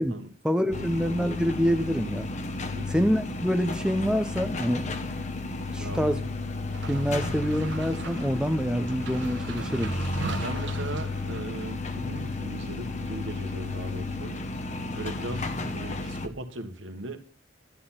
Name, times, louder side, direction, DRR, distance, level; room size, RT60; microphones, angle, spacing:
voice 1, 0.4-2.3 2.9-4.9 5.7-6.2 6.8-9.9, equal, 5° right, 6 dB, 0.7 m, -26 dB
sound 1, 0.7-16.3, left 3 dB, 35° left, 1.0 m, -33 dB
voice 2, 2.6-2.9 5.8-6.0 10.3-14.6 14.9-17.2, right 2 dB, 80° right, 6 dB, 1.6 m, -38 dB
sound 2, 6.7-11.8, right 3 dB, 65° right, 1.3 m, -39 dB
12.0 x 8.4 x 5.8 m, 0.38 s
head